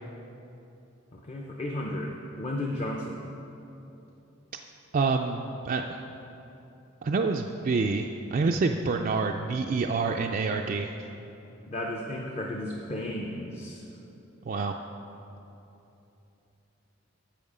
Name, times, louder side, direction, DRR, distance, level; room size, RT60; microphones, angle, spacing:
voice 1, 1.1-3.3 11.7-13.8, left 1 dB, 30° left, 0 dB, 0.6 m, -34 dB
voice 2, 4.9-6.0 7.0-10.9 14.5-14.7, right 4 dB, 40° right, 3 dB, 0.3 m, -27 dB
11.0 x 7.2 x 4.9 m, 2.9 s
head